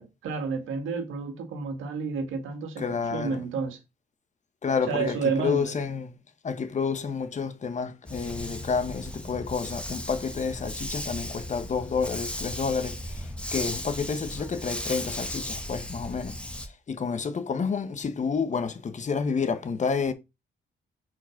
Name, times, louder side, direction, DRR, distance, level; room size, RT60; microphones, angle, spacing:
voice 1, 0.0-2.8 3.1-3.8 4.9-5.7, right 5 dB, 85° right, 1.7 m, -30 dB
voice 2, 2.8-3.4 4.6-6.1 6.4-20.1, left 5 dB, 35° left, 1.0 m, -30 dB
Dog, 8.1-16.7, left 1 dB, 5° left, 1.2 m, -36 dB
4.9 x 3.9 x 5.8 m
cardioid pair, 90°, 20 cm